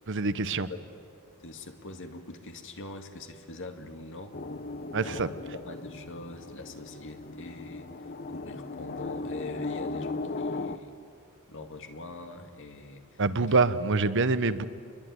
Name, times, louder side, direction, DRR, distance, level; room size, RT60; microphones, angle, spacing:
voice 1, 0.1-0.7 4.9-5.3 13.2-14.6, right 3 dB, 55° right, 13 dB, 1.0 m, -25 dB
voice 2, 1.4-4.4 5.0-5.3 5.6-10.9 11.5-13.6, left 2 dB, 60° left, 6 dB, 2.3 m, -43 dB
sound 1, 4.3-10.8, left 3 dB, 45° left, 0.9 m, -37 dB
27.0 x 22.5 x 9.7 m, 2.3 s
head